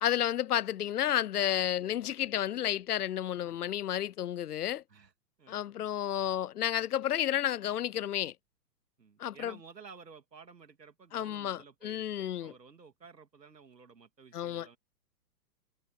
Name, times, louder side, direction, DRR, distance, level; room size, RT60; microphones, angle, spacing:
voice 1, 0.0-4.8 5.5-8.3 9.2-9.6 11.1-12.5 14.3-14.7, left 11 dB, 65° left, 0.8 m, -31 dB
voice 2, 9.0-14.8, right 5 dB, 85° right, 3.0 m, -53 dB
figure-of-eight pair, 115°, 49 cm